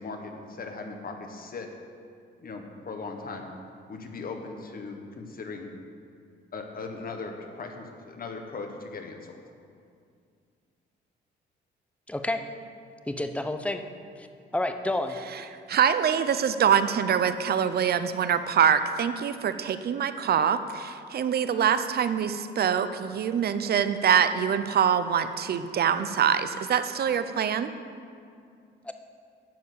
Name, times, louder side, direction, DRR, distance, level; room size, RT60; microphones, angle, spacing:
voice 1, 0.0-1.7 2.4-3.5 3.9-5.7 6.5-9.4, left 4 dB, 45° left, 4 dB, 1.4 m, -38 dB
voice 2, 12.1-12.4 13.1-13.8 14.2-14.3 14.5-15.2 28.8-28.9, left 1 dB, 5° left, 7 dB, 0.7 m, -29 dB
voice 3, 15.7-27.7, right 8 dB, 55° right, 11 dB, 0.6 m, -24 dB
12.5 x 4.4 x 8.5 m, 2.3 s
cardioid pair, 90°, 20 cm